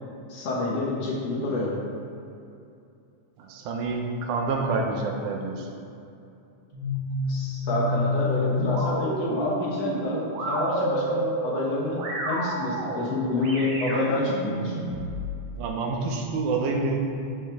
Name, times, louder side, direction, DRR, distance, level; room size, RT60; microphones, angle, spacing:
voice 1, 0.3-1.7 7.3-14.8, left 2 dB, 65° left, -4 dB, 1.9 m, -28 dB
voice 2, 3.4-5.7 15.6-17.0, right 3 dB, 90° right, 1 dB, 2.2 m, -27 dB
sound 1, 6.7-15.3, equal, 65° right, 2.3 m, -29 dB
6.4 x 6.0 x 3.4 m, 2.6 s
omnidirectional pair, 3.5 m